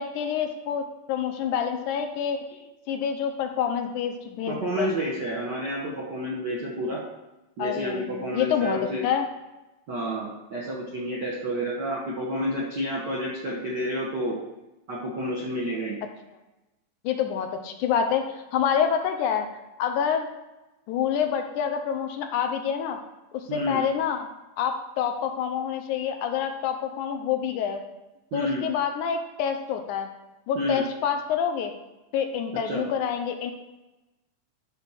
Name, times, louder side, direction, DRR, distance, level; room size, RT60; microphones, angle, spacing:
voice 1, 0.0-2.6 2.9-4.9 7.6-8.8 9.0-9.3 17.0-19.5 19.8-20.3 20.9-23.0 23.3-24.3 24.6-27.8 28.3-30.1 30.5-31.7 32.1-33.5, left 8 dB, 80° left, 6 dB, 2.0 m, -27 dB
voice 2, 4.5-7.0 7.6-9.0 9.9-14.4 14.9-16.0 23.5-23.8 28.3-28.6 30.5-30.8 32.6-32.9, equal, 60° right, -4 dB, 1.1 m, -30 dB
9.4 x 4.1 x 5.7 m, 1.0 s
omnidirectional pair, 3.8 m